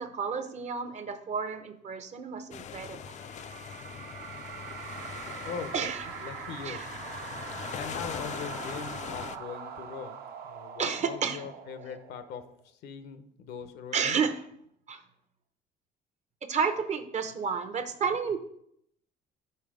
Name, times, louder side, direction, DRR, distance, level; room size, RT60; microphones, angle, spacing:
voice 1, 0.0-3.1 5.7-6.0 6.6-6.9 10.8-11.4 13.9-14.3 14.9-15.0 16.5-18.4, right 6 dB, 45° right, 9 dB, 0.8 m, -31 dB
sound 1, 2.5-9.4, left 8 dB, 45° left, 0.4 m, -41 dB
sound 2, 2.9-12.6, right 7 dB, 65° right, 1.0 m, -43 dB
voice 2, 6.2-6.8 7.7-14.2, left 6 dB, 75° left, 10 dB, 0.8 m, -41 dB
6.0 x 5.6 x 5.0 m, 0.70 s
cardioid pair, 110°, 17 cm